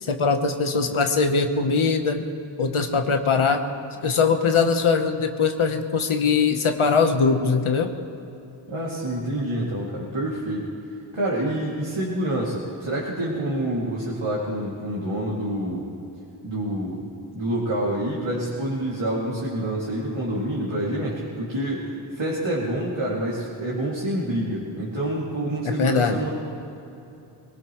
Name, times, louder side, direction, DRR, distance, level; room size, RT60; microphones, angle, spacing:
voice 1, 0.0-2.2 2.6-3.6 4.0-7.9 25.8-26.2, left 5 dB, 85° left, 6 dB, 1.1 m, -21 dB
voice 2, 8.7-10.7 11.1-15.9 16.4-21.9 22.1-26.3, right 1 dB, 70° right, -6 dB, 2.5 m, -27 dB
22.5 x 18.5 x 3.1 m, 2.8 s
wide cardioid pair, 55°, 48 cm